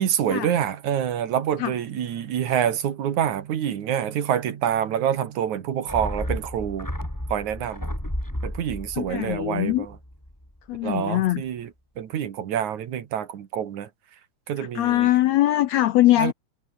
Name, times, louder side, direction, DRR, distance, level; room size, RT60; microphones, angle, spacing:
voice 1, 0.0-6.9 7.3-7.9 8.4-9.9 10.8-11.7 12.0-13.9 14.5-15.1 16.2-16.3, right 9 dB, 70° right, 3.1 m, -26 dB
sound 1, 5.9-10.5 10.7-10.8, equal, 5° left, 5.9 m, -32 dB
voice 2, 9.0-9.9 10.7-11.4 14.6-16.3, left 15 dB, 75° left, 1.6 m, -22 dB
omnidirectional pair, 3.6 m